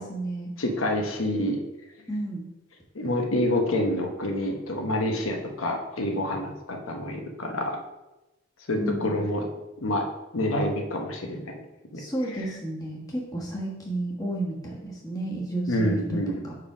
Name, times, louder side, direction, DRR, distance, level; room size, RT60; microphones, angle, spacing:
voice 1, 0.0-0.5 2.1-2.5 8.8-9.2 12.0-16.2 16.4-16.5, right 1 dB, 20° left, -3 dB, 1.3 m, -32 dB
voice 2, 0.6-1.6 2.9-7.8 8.7-9.5 9.8-10.0 10.3-11.5 11.9-12.0 15.7-16.4, left 1 dB, 85° left, 2 dB, 1.0 m, -27 dB
5.3 x 4.8 x 5.0 m, 1.0 s
head